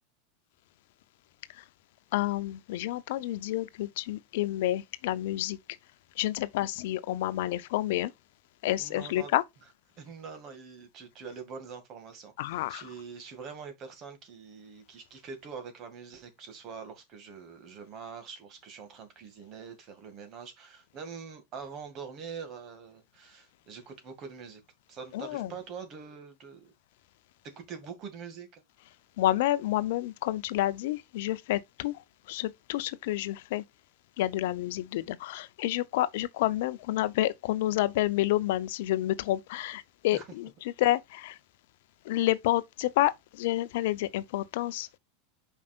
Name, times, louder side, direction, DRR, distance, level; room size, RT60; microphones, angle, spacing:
voice 1, 2.1-5.6 6.2-8.1 8.6-9.4 12.4-12.9 25.1-25.5 29.2-33.6 34.2-41.4 42.0-45.0, left 15 dB, 60° left, 0.6 m, -29 dB
voice 2, 8.8-9.3 10.0-24.6 24.9-26.7 27.6-28.6 40.1-40.2, right 6 dB, 40° right, 2.1 m, -44 dB
8.4 x 5.5 x 2.4 m
figure-of-eight pair, 85°, 0 cm